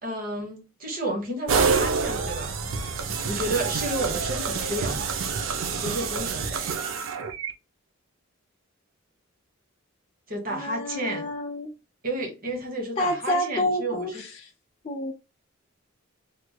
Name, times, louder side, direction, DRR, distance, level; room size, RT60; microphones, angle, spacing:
voice 1, 0.0-5.1 5.7-6.7 10.3-11.3 12.0-14.2, right 1 dB, 45° right, 1.1 m, -32 dB
sound 1, 1.5-7.5, right 5 dB, 80° right, 0.6 m, -27 dB
voice 2, 10.5-11.7 13.0-14.1 14.8-15.1, left 1 dB, 30° left, 0.4 m, -28 dB
3.3 x 3.1 x 2.2 m
head